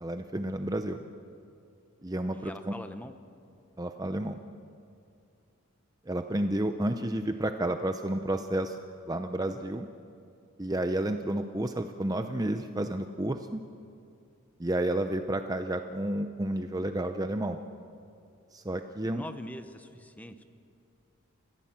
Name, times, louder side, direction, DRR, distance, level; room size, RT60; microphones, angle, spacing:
voice 1, 0.0-1.0 2.0-2.7 3.8-4.4 6.1-8.8 9.1-9.9 10.6-13.6 14.6-17.6 18.5-19.2, right 1 dB, 15° right, 7 dB, 0.6 m, -31 dB
voice 2, 2.3-3.1 19.0-20.4, left 1 dB, 5° left, 9 dB, 0.9 m, -43 dB
30.0 x 15.5 x 7.5 m, 2.4 s
head